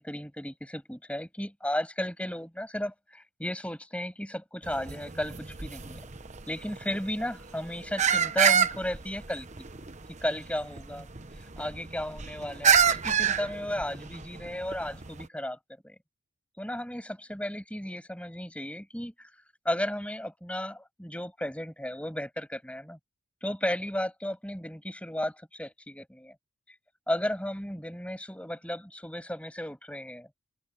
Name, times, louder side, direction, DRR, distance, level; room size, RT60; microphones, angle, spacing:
voice 1, 0.0-6.0 6.5-9.5 10.2-11.1 11.6-15.6 15.8-15.9 16.6-19.3 19.6-23.0 23.4-26.3 26.7-26.8 27.1-30.3, left 1 dB, 5° left, 7.8 m, -34 dB
sound 1, 4.6-15.3, right 7 dB, 35° right, 1.0 m, -29 dB
open air
head